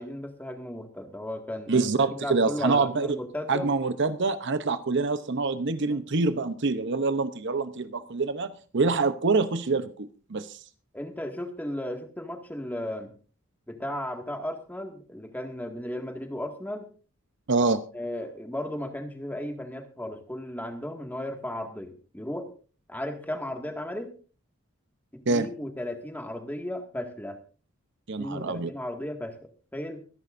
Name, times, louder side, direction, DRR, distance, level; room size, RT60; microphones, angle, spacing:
voice 1, 0.0-1.8 2.1-3.7 5.9-6.0 10.9-13.1 13.7-16.9 17.9-22.5 22.9-24.1 25.1-27.4 28.2-29.4 29.7-30.0, left 1 dB, 10° left, 4 dB, 1.9 m, -35 dB
voice 2, 1.7-3.2 3.5-10.6 17.5-17.8 25.3-25.5 28.1-28.7, right 3 dB, 55° right, 11 dB, 0.8 m, -26 dB
25.0 x 11.0 x 2.6 m, 0.37 s
head